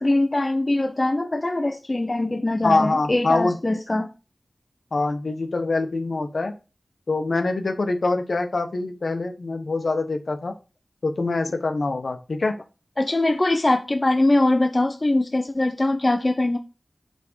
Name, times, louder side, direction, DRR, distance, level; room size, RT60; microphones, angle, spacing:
voice 1, 0.0-4.1 13.0-16.6, left 2 dB, 35° left, 0.8 m, -22 dB
voice 2, 2.6-3.6 4.9-6.5 7.1-10.5 11.0-12.5, left 3 dB, 70° left, 1.3 m, -24 dB
7.9 x 3.7 x 6.4 m
wide cardioid pair, 70°, 0 cm